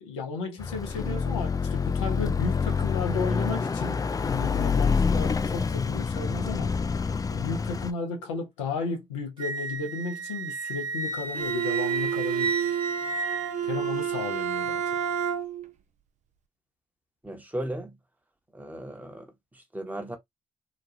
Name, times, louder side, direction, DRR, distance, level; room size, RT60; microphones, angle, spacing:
voice 1, 0.0-6.7 7.3-12.5 13.6-14.8, left 5 dB, 85° left, 0.6 m, -34 dB
Car passing by / Accelerating revving vroom, 0.6-7.9, left 5 dB, 25° left, 0.4 m, -27 dB
Wind instrument woodwind instrument, 9.4-14.0, right 5 dB, 30° right, 1.0 m, -32 dB
Bowed string instrument, 11.3-15.7, right 8 dB, 55° right, 0.5 m, -30 dB
voice 2, 17.2-17.9 18.5-20.2, right 1 dB, 10° right, 1.1 m, -36 dB
2.9 x 2.3 x 2.5 m
hypercardioid pair, 45°, 15 cm